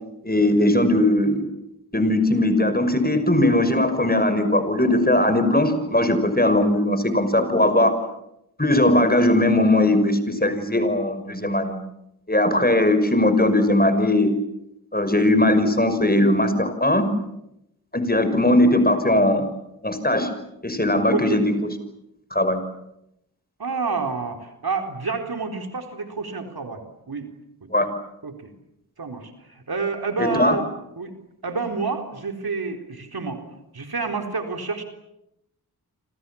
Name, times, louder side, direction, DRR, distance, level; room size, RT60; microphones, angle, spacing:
voice 1, 0.2-1.5 1.9-7.9 8.6-11.8 12.3-14.3 14.9-17.1 17.9-19.5 19.8-20.3 20.6-21.7 22.3-22.6 27.7-27.9 30.2-30.6, left 1 dB, 25° left, 9 dB, 5.9 m, -19 dB
voice 2, 21.1-21.4 23.6-27.3 27.6-27.7 28.2-28.5 29.0-30.7 31.0-31.1 31.4-33.4 33.7-34.8, right 4 dB, 70° right, 5 dB, 4.2 m, -29 dB
28.5 x 27.0 x 7.2 m, 0.83 s
cardioid pair, 45°, 38 cm